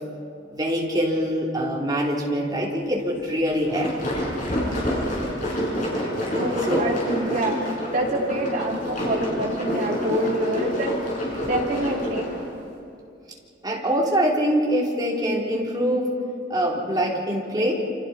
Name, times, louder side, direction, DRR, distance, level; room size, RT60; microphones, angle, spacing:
voice 1, 0.5-3.9 6.7-6.8 13.6-16.1 16.5-17.7, equal, 20° right, -3 dB, 3.4 m, -24 dB
sound 1, 3.5-12.4, equal, 45° left, 7.2 m, -27 dB
voice 2, 5.9-10.9 11.4-12.2, right 1 dB, 45° right, -2 dB, 3.4 m, -27 dB
28.5 x 27.0 x 4.3 m, 2.4 s
head